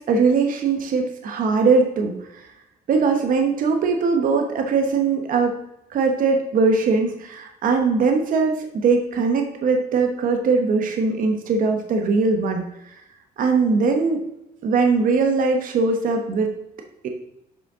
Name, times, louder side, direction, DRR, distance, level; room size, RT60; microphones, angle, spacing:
voice 1, 0.0-2.5 2.9-5.6 5.9-12.9 13.4-14.2 14.6-16.5 17.0-17.1, right 4 dB, 55° right, 4 dB, 1.0 m, -21 dB
7.5 x 5.4 x 3.6 m, 0.85 s
cardioid pair, 110°, 17 cm